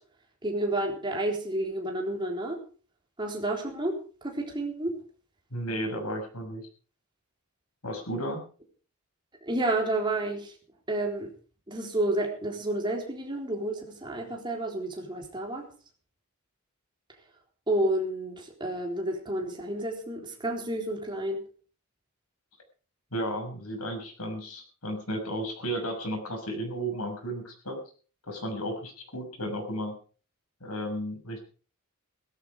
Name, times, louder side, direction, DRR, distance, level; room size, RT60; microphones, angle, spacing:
voice 1, 0.4-2.6 3.2-5.0 9.4-10.5 10.9-11.3 11.7-15.7 17.7-21.4, right 1 dB, 20° right, 1 dB, 4.0 m, -30 dB
voice 2, 5.5-6.7 7.8-8.4 23.1-27.8 28.3-30.0 30.6-31.4, equal, 90° left, 3 dB, 6.5 m, -33 dB
17.5 x 13.0 x 4.9 m, 0.39 s
head